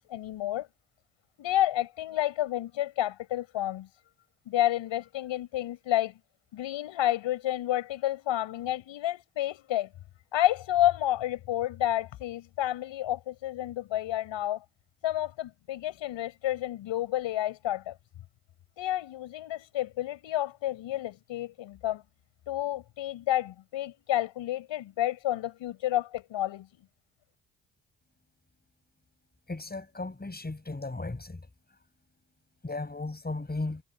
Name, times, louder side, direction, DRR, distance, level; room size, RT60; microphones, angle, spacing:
voice 1, 0.1-0.7 1.4-3.9 4.5-6.2 6.5-9.9 10.3-14.6 15.0-18.0 18.8-22.0 22.5-26.8, left 13 dB, 65° left, 7.2 m, -30 dB
voice 2, 29.5-31.4 32.6-33.8, left 2 dB, 20° left, 6.7 m, -35 dB
figure-of-eight pair, 40°, 48 cm